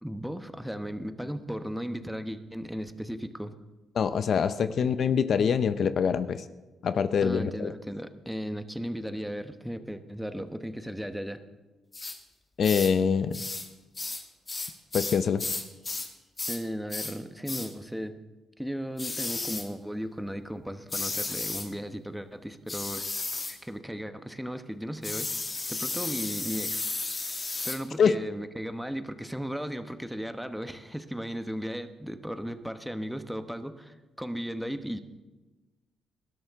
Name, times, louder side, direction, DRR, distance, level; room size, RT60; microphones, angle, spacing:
voice 1, 0.0-3.5 4.8-4.9 7.2-11.4 16.5-18.2 18.6-23.1 23.5-25.3 25.7-26.9 27.2-27.4 27.6-35.0, equal, ahead, 9 dB, 1.0 m, -36 dB
voice 2, 4.0-6.4 6.8-7.7 12.6-13.4 14.9-15.4 28.0-28.1, left 6 dB, 55° left, 12 dB, 0.6 m, -24 dB
sound 1, 11.9-12.2 12.6-13.0 13.3-13.7 14.0-16.1 16.4-16.6 16.9-17.2 17.5-17.7 19.0-19.7 20.9-21.7 22.7-23.6 25.0-27.8, left 3 dB, 25° left, 1.6 m, -33 dB
19.5 x 12.5 x 3.6 m, 1.2 s
cardioid pair, 90°, 0 cm